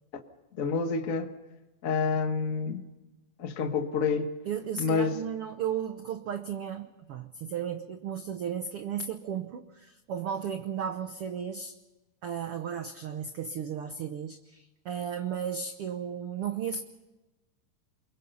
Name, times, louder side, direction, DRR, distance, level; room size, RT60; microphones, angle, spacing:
voice 1, 0.6-1.3 1.8-2.8 3.4-4.3 4.8-5.2, left 5 dB, 85° left, 5 dB, 0.7 m, -28 dB
voice 2, 4.4-11.7 12.2-16.8, right 8 dB, 85° right, 8 dB, 1.2 m, -34 dB
29.0 x 22.5 x 5.5 m, 1.1 s
omnidirectional pair, 4.0 m